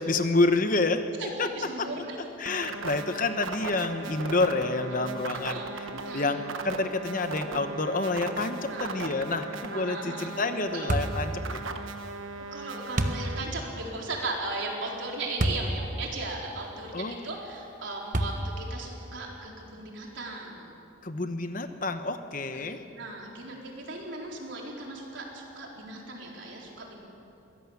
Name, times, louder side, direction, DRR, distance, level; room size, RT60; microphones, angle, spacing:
voice 1, 0.0-1.1 1.4-1.5 1.8-1.9 2.4-11.6 16.9-17.3 21.0-22.8, left 3 dB, 40° left, 8 dB, 1.0 m, -28 dB
voice 2, 1.2-2.2 5.0-5.1 5.5-5.7 6.0-6.3 8.7-9.0 9.7-10.4 10.7-10.9 12.5-20.7 22.5-27.0, right 2 dB, 65° right, -2 dB, 4.1 m, -37 dB
sound 1, 2.4-13.4, right 3 dB, 85° right, 1.2 m, -38 dB
sound 2, 10.9-11.2 13.0-13.2 15.4-15.7 16.3-16.4 18.1-18.6, right 1 dB, 40° right, 1.2 m, -27 dB
22.5 x 16.5 x 7.2 m, 2.9 s
head